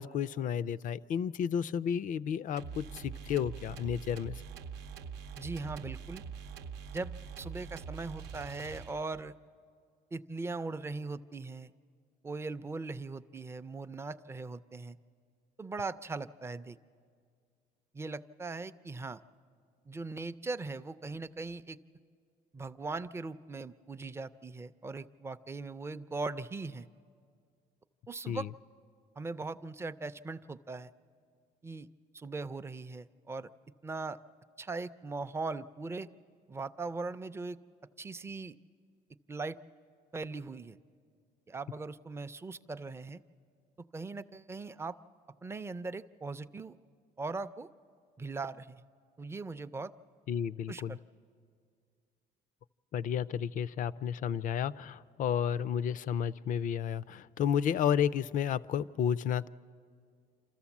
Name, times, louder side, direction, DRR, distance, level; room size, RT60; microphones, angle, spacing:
voice 1, 0.0-4.4 28.3-28.5 50.3-51.0 52.9-59.5, left 8 dB, 50° left, 19 dB, 0.4 m, -32 dB
sound 1, 2.6-9.3, right 6 dB, 85° right, 0.7 m, -44 dB
voice 2, 5.4-6.2 6.9-7.1 7.4-9.3 10.1-11.7 12.2-15.0 15.6-16.8 17.9-19.2 19.9-21.8 22.5-26.9 28.1-28.5 29.2-30.9 31.6-31.9 32.1-33.5 33.8-34.2 34.6-36.1 36.5-37.6 38.0-38.6 39.3-39.6 40.1-40.8 41.5-43.2 43.9-45.0 45.4-46.8 47.2-47.7 48.2-48.8 49.2-49.9 50.7-51.0, right 3 dB, 15° right, 12 dB, 0.4 m, -39 dB
27.5 x 13.5 x 7.2 m, 2.2 s
cardioid pair, 110°, 17 cm